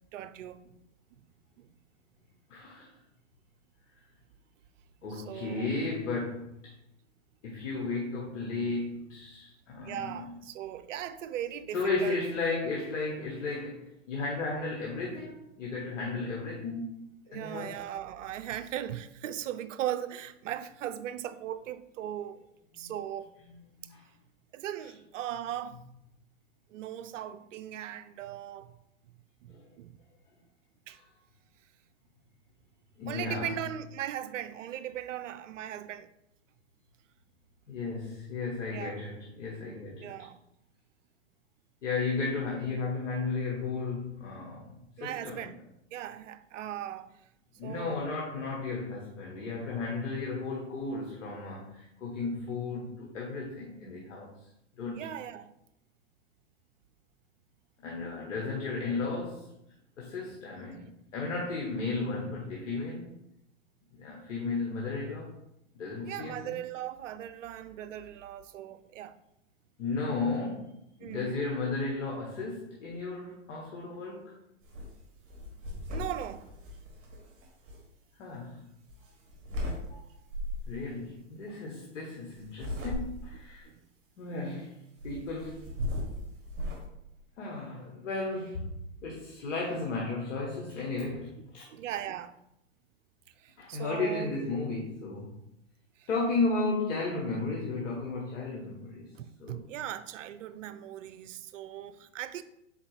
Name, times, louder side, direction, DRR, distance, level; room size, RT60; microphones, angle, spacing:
voice 1, 0.1-0.6 1.6-1.7 5.1-5.8 9.8-12.2 17.3-22.4 22.7-23.3 24.5-25.8 26.7-28.7 29.4-29.9 30.9-31.0 33.1-36.1 38.7-39.0 40.0-40.4 45.0-45.6 45.9-47.1 47.6-48.1 54.9-55.5 60.1-60.2 62.2-62.4 66.0-69.1 71.0-71.4 75.9-76.5 83.7-83.8 84.3-84.5 91.7-92.4 93.4-94.5 96.0-96.2 99.2-102.4, right 11 dB, 75° right, 0.5 m, -38 dB
voice 2, 2.5-2.9 5.0-6.7 7.4-10.3 11.7-17.0 17.3-17.7 22.7-22.9 23.5-24.0 29.5-29.7 33.0-33.5 37.7-40.1 41.8-45.5 47.6-54.3 54.8-55.1 57.8-59.5 60.0-63.1 63.9-65.3 65.7-66.5 69.8-74.3 78.2-78.6 79.9-80.0 80.7-83.7 84.2-84.7 85.0-85.6 87.4-88.7 89.0-91.6 93.6-95.4 96.1-99.1 99.4-99.6, left 3 dB, 75° left, 1.1 m, -34 dB
sound 1, 74.6-74.9 75.3-77.8 78.9-79.8 80.3-80.7 82.4-83.4 85.0-86.8, left 1 dB, 35° right, 1.7 m, -37 dB
4.2 x 4.1 x 3.1 m
hypercardioid pair, 110°, 38 cm